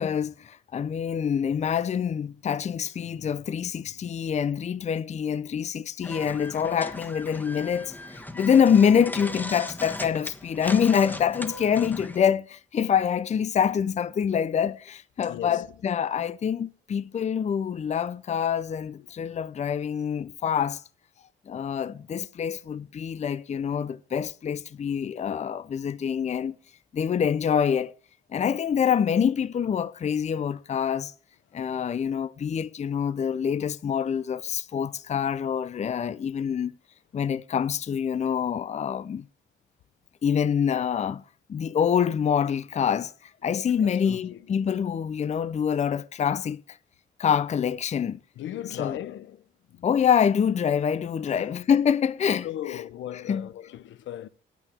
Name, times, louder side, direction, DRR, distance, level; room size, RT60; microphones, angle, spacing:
voice 1, 0.0-20.8 21.5-26.5 26.9-27.9 28.3-31.1 31.5-36.7 37.1-39.2 40.2-41.2 41.5-46.8 47.2-48.2 48.8-49.0 49.8-52.8 53.3-53.5, left 7 dB, 35° left, 0.5 m, -26 dB
voice 2, 3.0-3.3 3.9-4.0 6.0-6.1 15.2-15.7 19.0-19.1 43.8-44.6 48.3-49.9 51.2-51.7 52.4-54.3, left 12 dB, 75° left, 0.8 m, -38 dB
sound 1, 6.0-12.2, left 1 dB, 10° left, 1.4 m, -38 dB
9.8 x 9.2 x 6.0 m
cardioid pair, 90°, 20 cm